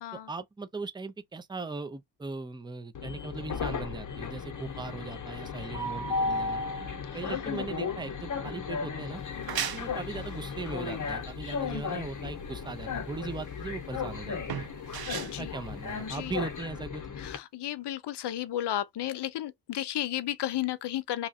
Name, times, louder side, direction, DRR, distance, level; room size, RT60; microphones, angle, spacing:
voice 1, 0.1-6.6 7.1-9.2 9.7-14.7 15.2-17.0, right 3 dB, 10° right, 0.5 m, -39 dB
Train, 2.9-17.4, left 5 dB, 45° left, 1.0 m, -35 dB
sound 1, 9.2-16.6, right 9 dB, 60° right, 0.7 m, -39 dB
voice 2, 17.2-21.3, left 12 dB, 70° left, 0.5 m, -33 dB
3.0 x 2.3 x 4.1 m
wide cardioid pair, 110°, 43 cm